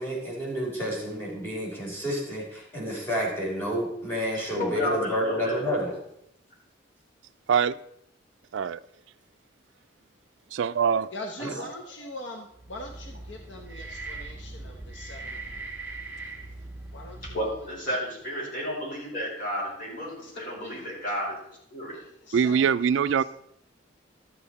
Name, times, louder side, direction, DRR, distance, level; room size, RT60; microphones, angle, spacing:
voice 1, 0.0-5.9 11.4-11.5, equal, 10° left, -5 dB, 3.5 m, -30 dB
voice 2, 4.5-5.9 11.6-11.7 17.3-21.4 21.7-21.9, equal, 45° left, -5 dB, 4.6 m, -32 dB
voice 3, 10.5-11.1 22.3-23.2, right 7 dB, 70° right, 14 dB, 0.3 m, -23 dB
voice 4, 11.1-15.6 16.9-17.7 20.2-20.3 20.6-20.9 21.9-22.9 23.2-23.3, left 1 dB, 65° left, 3 dB, 1.0 m, -42 dB
sound 1, 12.5-17.9, right 2 dB, 10° right, 1.2 m, -40 dB
12.5 x 7.8 x 4.1 m, 0.76 s
head